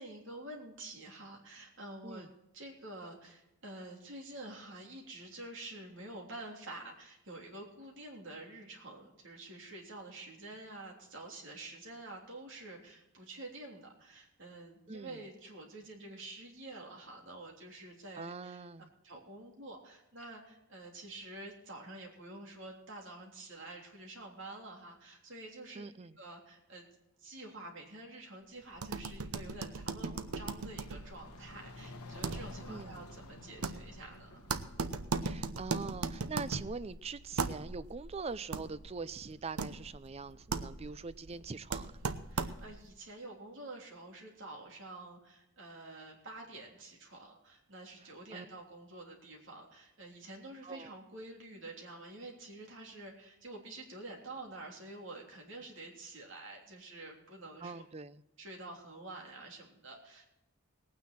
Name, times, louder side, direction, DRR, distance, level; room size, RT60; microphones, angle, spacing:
voice 1, 0.0-2.3 2.5-18.6 19.0-25.8 26.2-26.9 27.2-34.5 42.3-57.8 58.4-60.2, right 2 dB, 60° right, 0 dB, 3.3 m, -48 dB
voice 2, 14.9-15.2 18.2-18.9 25.8-26.2 32.7-33.0 35.2-41.9 48.3-48.5 50.6-50.9 57.6-58.2, right 4 dB, 30° right, 15 dB, 0.4 m, -43 dB
sound 1, 28.7-42.9, right 4 dB, 80° right, 0.8 m, -39 dB
sound 2, 29.5-35.4, left 2 dB, 90° left, 1.2 m, -52 dB
19.0 x 9.3 x 4.3 m, 0.90 s
head